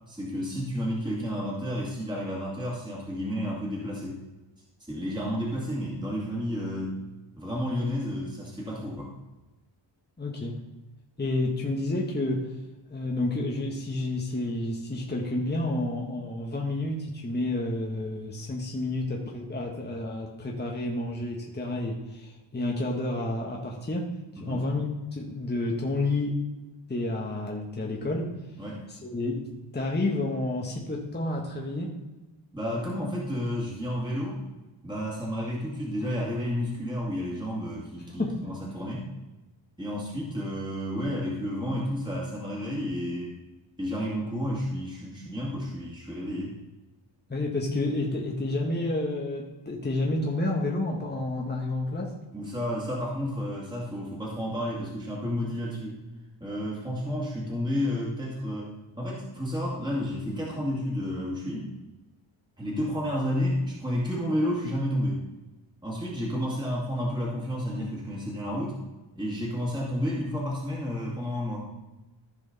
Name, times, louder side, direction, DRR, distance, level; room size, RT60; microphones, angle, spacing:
voice 1, 0.1-4.2 4.8-7.0 7.4-9.1 24.4-24.6 28.6-28.8 32.5-34.4 34.8-39.1 39.8-43.4 43.8-46.6 52.3-56.0 56.4-61.7 62.6-65.2 65.8-68.8 69.1-71.7, equal, 10° right, -5 dB, 2.3 m, -31 dB
voice 2, 10.2-10.6 11.2-12.6 12.9-26.4 26.9-28.3 28.9-32.0 38.2-38.5 47.3-52.2, left 2 dB, 20° left, -1 dB, 1.3 m, -30 dB
14.5 x 4.9 x 4.0 m, 1.1 s
wide cardioid pair, 90°, 47 cm